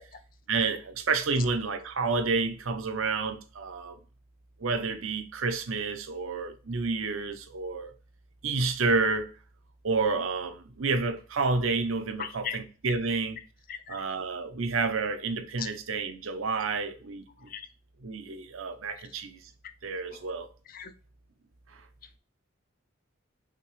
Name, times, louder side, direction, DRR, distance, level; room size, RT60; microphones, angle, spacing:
voice 1, 0.5-4.0 4.6-7.9 8.4-9.3 9.8-13.4 13.9-17.5 18.0-19.4 19.8-20.5, right 4 dB, 75° right, 0.7 m, -29 dB
voice 2, 12.2-12.6 13.7-14.0 15.6-15.7 17.5-17.7 20.7-20.9, left 8 dB, 40° left, 0.5 m, -37 dB
5.8 x 2.9 x 3.2 m
head